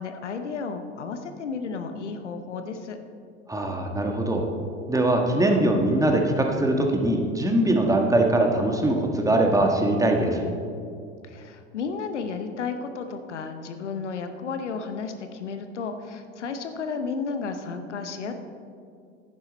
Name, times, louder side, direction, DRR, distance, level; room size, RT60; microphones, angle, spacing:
voice 1, 0.0-3.0 11.2-18.3, left 5 dB, 85° left, 8 dB, 0.9 m, -33 dB
voice 2, 3.5-4.4 4.9-10.4, right 1 dB, 10° right, 2 dB, 1.5 m, -22 dB
11.0 x 9.6 x 4.1 m, 2.4 s
hypercardioid pair, 80°, 35 cm